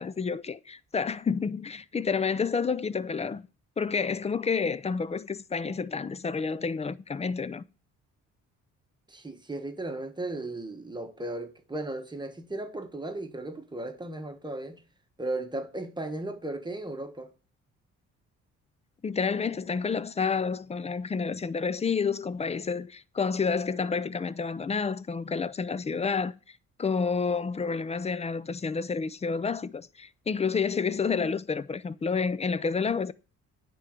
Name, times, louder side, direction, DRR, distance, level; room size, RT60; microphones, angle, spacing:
voice 1, 0.0-3.5 3.8-7.6 19.0-26.3 26.8-33.1, left 5 dB, 20° left, 0.4 m, -29 dB
voice 2, 9.1-14.8 15.2-17.3, right 2 dB, 15° right, 1.3 m, -36 dB
9.7 x 3.9 x 7.3 m
cardioid pair, 90°, 30 cm